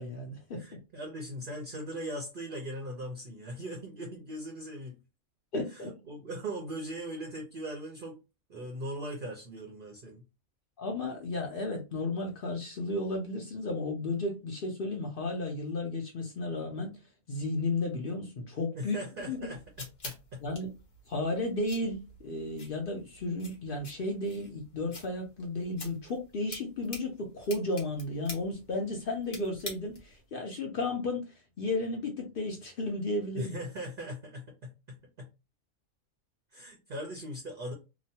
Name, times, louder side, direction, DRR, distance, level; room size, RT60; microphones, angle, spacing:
voice 1, 0.0-0.8 5.5-6.0 10.8-17.0 17.3-19.0 19.3-19.4 20.4-20.7 21.1-33.5, left 2 dB, 65° left, 0.5 m, -33 dB
voice 2, 0.6-5.0 5.7-8.2 8.5-10.2 18.7-20.4 33.3-35.3 36.5-37.7, right 1 dB, 55° right, 0.6 m, -40 dB
sound 1, 19.2-30.2, left 2 dB, 50° left, 1.1 m, -48 dB
2.9 x 2.1 x 2.7 m
omnidirectional pair, 1.5 m